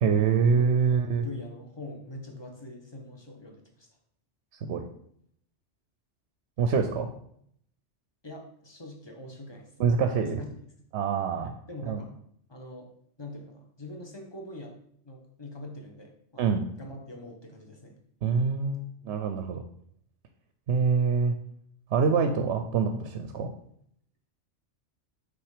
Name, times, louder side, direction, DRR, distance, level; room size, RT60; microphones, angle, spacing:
voice 1, 0.0-1.3 4.6-4.9 6.6-7.1 9.8-10.4 10.9-11.5 11.9-12.0 16.4-16.6 18.2-19.6 20.7-21.3 21.9-23.5, right 5 dB, 70° right, 7 dB, 0.8 m, -25 dB
voice 2, 0.8-3.9 8.2-10.5 11.4-12.1 12.5-12.9 13.2-14.7 15.0-16.5 16.8-18.0, left 1 dB, 25° left, 1 dB, 1.0 m, -43 dB
6.0 x 3.9 x 4.8 m, 0.67 s
omnidirectional pair, 1.2 m